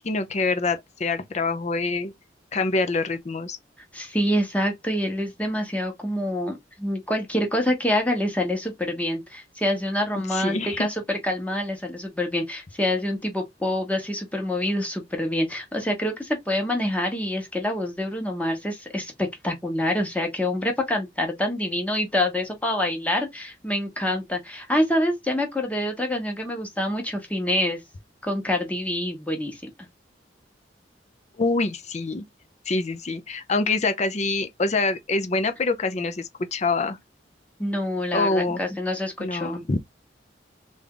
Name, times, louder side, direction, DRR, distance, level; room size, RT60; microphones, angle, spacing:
voice 1, 0.0-2.1 2.5-3.6 10.2-10.9 31.4-32.2 32.7-37.0 38.1-38.6 39.2-39.8, left 3 dB, 40° left, 0.6 m, -25 dB
voice 2, 3.9-27.8 28.2-29.7 37.6-39.7, left 1 dB, 10° left, 1.0 m, -26 dB
3.5 x 2.5 x 3.7 m
head